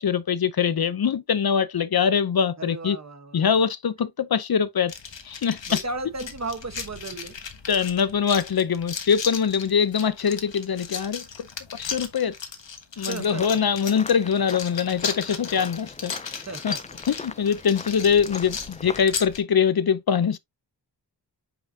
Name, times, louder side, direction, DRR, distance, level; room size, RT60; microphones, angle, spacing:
voice 1, 0.0-3.0 3.3-4.9 5.2-5.6 7.7-11.5 11.7-12.4 13.0-16.3 16.6-16.7 17.1-20.4, left 7 dB, 55° left, 0.6 m, -23 dB
voice 2, 2.6-3.5 5.7-7.4 12.9-13.4 16.5-16.8, right 3 dB, 40° right, 1.1 m, -35 dB
sound 1, 4.9-19.4, left 6 dB, 80° left, 1.5 m, -36 dB
sound 2, 13.2-19.1, left 4 dB, 20° left, 0.3 m, -41 dB
7.0 x 5.6 x 2.7 m
wide cardioid pair, 100°, 43 cm